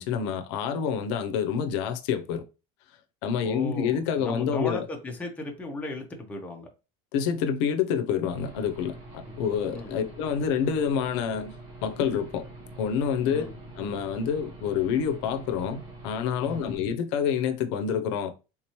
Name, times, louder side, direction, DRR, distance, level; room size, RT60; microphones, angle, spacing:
voice 1, 0.0-2.4 3.2-4.8 7.1-12.5 12.8-13.4 13.8-18.3, left 7 dB, 80° left, 0.5 m, -27 dB
voice 2, 3.4-6.7 9.2-9.3 9.7-9.9 13.3-13.5 16.4-16.6, left 2 dB, 10° left, 0.7 m, -36 dB
Aircraft / Engine, 8.3-16.8, right 2 dB, 45° right, 1.3 m, -45 dB
3.5 x 2.9 x 2.9 m
cardioid pair, 150°, 14 cm